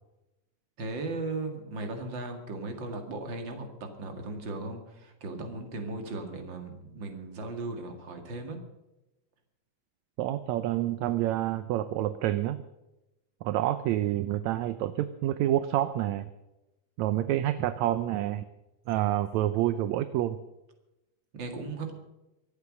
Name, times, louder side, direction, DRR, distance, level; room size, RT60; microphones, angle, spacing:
voice 1, 0.8-3.7 4.0-8.6 21.3-21.9, right 2 dB, 40° right, 5 dB, 2.5 m, -37 dB
voice 2, 10.2-12.6 13.4-16.3 17.0-18.5 18.9-20.4, right 13 dB, 75° right, 13 dB, 1.8 m, -28 dB
24.5 x 8.3 x 6.4 m, 0.98 s
omnidirectional pair, 3.5 m